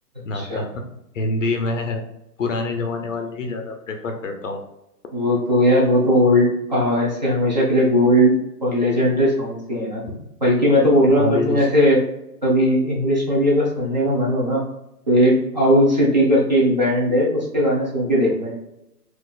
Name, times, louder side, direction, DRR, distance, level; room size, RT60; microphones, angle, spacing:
voice 1, 0.2-0.8 1.1-2.0 2.4-4.6 10.1-10.2 11.2-11.7, left 3 dB, 55° left, 4 dB, 0.5 m, -26 dB
voice 2, 5.1-10.0 10.4-12.0 12.4-14.6 15.1-18.5, equal, 30° right, -5 dB, 0.6 m, -18 dB
4.0 x 2.4 x 2.3 m, 0.87 s
hypercardioid pair, 170°, 48 cm